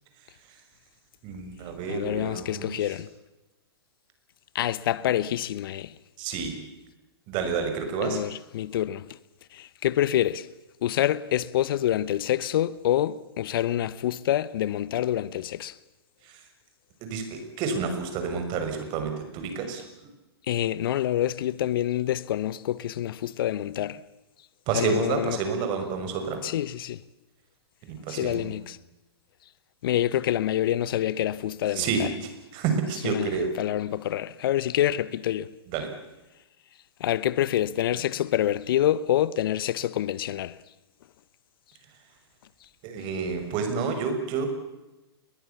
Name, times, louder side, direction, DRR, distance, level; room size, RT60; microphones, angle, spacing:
voice 1, 1.2-2.8 6.2-6.6 7.3-8.2 17.0-19.8 24.7-26.4 27.9-28.5 31.7-32.1 32.5-33.5 35.7-35.9 42.8-44.5, right 5 dB, 40° right, 6.3 m, -29 dB
voice 2, 1.9-3.1 4.5-5.9 8.0-9.2 9.5-10.5 10.8-15.8 20.5-24.0 24.7-25.4 26.4-27.0 28.1-28.8 29.8-32.1 33.0-35.5 37.0-40.6, left 12 dB, 60° left, 1.0 m, -27 dB
29.0 x 22.0 x 7.2 m
hypercardioid pair, 120°, 13 cm